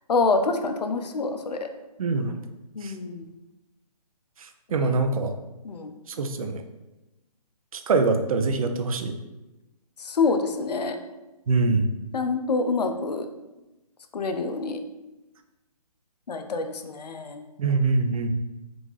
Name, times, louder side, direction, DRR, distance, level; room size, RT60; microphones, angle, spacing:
voice 1, 0.1-1.7 2.8-3.3 4.7-4.9 5.6-5.9 10.0-11.0 12.1-13.3 14.1-14.8 16.3-17.4, left 4 dB, 80° left, 7 dB, 0.5 m, -26 dB
voice 2, 2.0-2.4 2.8-2.9 4.4-5.3 6.1-6.6 7.7-9.1 11.5-11.9 17.6-18.3, right 3 dB, 60° right, 7 dB, 0.4 m, -24 dB
3.6 x 2.5 x 3.1 m, 1.0 s
hypercardioid pair, 150°, 21 cm